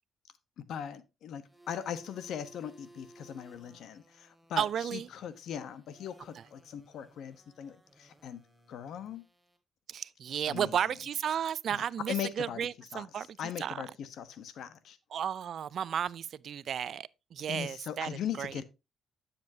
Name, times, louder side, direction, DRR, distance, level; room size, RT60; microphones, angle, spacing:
voice 1, 0.6-8.4 8.7-9.2 10.5-10.8 11.7-15.0 17.5-18.6, left 9 dB, 75° left, 1.0 m, -40 dB
sound 1, 1.4-9.6, right 1 dB, ahead, 2.7 m, -59 dB
voice 2, 4.6-5.1 9.9-13.3 13.6-13.8 15.1-18.1 18.4-18.5, right 9 dB, 60° right, 0.4 m, -33 dB
10.5 x 7.3 x 2.7 m
cardioid pair, 90°, 0 cm